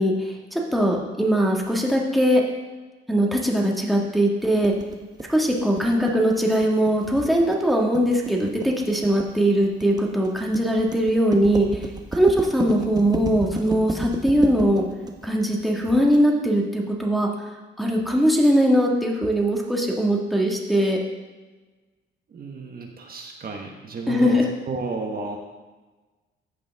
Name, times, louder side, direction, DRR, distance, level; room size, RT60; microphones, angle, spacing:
voice 1, 0.0-2.4 3.1-4.7 5.3-11.9 12.1-14.8 15.2-17.3 17.8-21.0 24.1-24.4, equal, ahead, -2 dB, 1.6 m, -21 dB
sound 1, 4.6-16.2, right 3 dB, 20° right, 0.9 m, -32 dB
voice 2, 22.3-25.4, right 4 dB, 50° right, 2 dB, 1.1 m, -32 dB
14.5 x 5.1 x 3.5 m, 1.2 s
cardioid pair, 90°, 20 cm